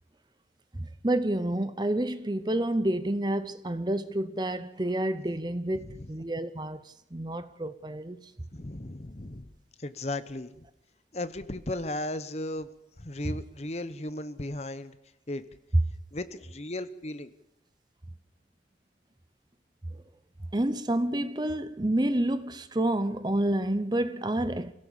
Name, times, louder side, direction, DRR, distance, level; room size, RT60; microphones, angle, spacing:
voice 1, 0.7-8.3 13.2-13.4 15.7-15.8 19.9-20.0 20.4-24.7, right 1 dB, 25° right, 0.7 m, -29 dB
voice 2, 8.5-9.5 9.8-10.7 11.1-12.7 13.0-14.9 15.3-15.4 16.1-17.3, left 1 dB, 35° left, 1.0 m, -35 dB
26.0 x 16.5 x 7.2 m
head